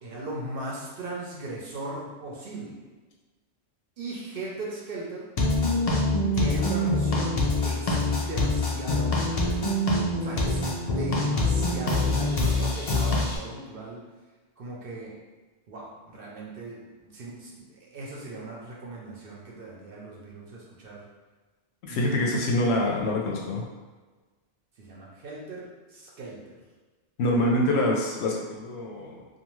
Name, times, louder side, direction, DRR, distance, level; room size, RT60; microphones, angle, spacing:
voice 1, 0.0-2.9 4.0-5.3 6.3-9.7 10.2-14.0 14.6-15.1 15.7-21.0 21.9-22.5 24.8-26.6, right 2 dB, 60° right, -4 dB, 0.8 m, -38 dB
sound 1, 5.4-13.4, left 2 dB, 55° left, 0.4 m, -25 dB
voice 2, 21.8-23.6 27.2-29.3, left 1 dB, 70° left, -1 dB, 0.8 m, -25 dB
2.5 x 2.3 x 3.0 m, 1.3 s
omnidirectional pair, 1.2 m